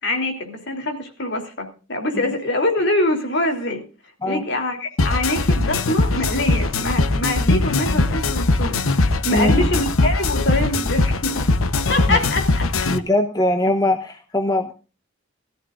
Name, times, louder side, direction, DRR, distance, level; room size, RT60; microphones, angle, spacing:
voice 1, 0.0-3.8 4.2-11.5 11.9-12.6, left 1 dB, 55° left, 4 dB, 3.3 m, -24 dB
sound 1, 5.0-13.0, left 2 dB, 85° left, 1.0 m, -20 dB
voice 2, 12.9-14.7, left 1 dB, 20° left, 4 dB, 0.9 m, -21 dB
20.0 x 14.0 x 2.5 m, 0.34 s
head